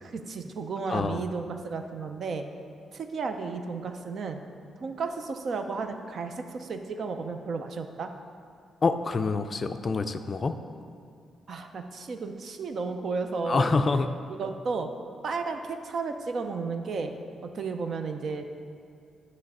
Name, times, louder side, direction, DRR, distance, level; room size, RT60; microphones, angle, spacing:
voice 1, 0.0-2.5 2.9-4.4 4.8-8.1 11.5-13.7 14.4-14.9 15.2-17.1 17.4-18.5, right 4 dB, 55° right, 6 dB, 0.5 m, -33 dB
voice 2, 0.9-1.2 8.8-10.5 13.5-14.1, left 4 dB, 35° left, 8 dB, 0.3 m, -26 dB
9.4 x 3.2 x 6.6 m, 2.3 s
cardioid pair, 115°, 0 cm